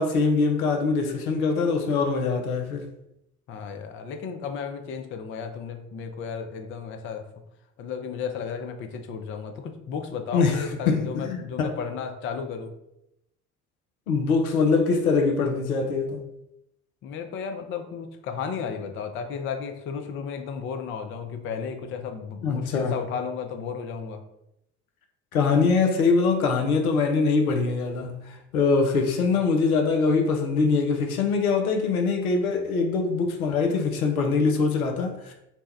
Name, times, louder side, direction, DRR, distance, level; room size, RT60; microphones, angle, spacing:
voice 1, 0.0-2.9 10.3-11.8 14.1-16.2 22.4-23.0 25.3-35.3, left 4 dB, 80° left, 0.6 m, -23 dB
voice 2, 3.5-7.3 7.8-12.7 17.0-24.2, left 6 dB, 30° left, 0.4 m, -34 dB
2.8 x 2.1 x 3.2 m
figure-of-eight pair, 55°, 43 cm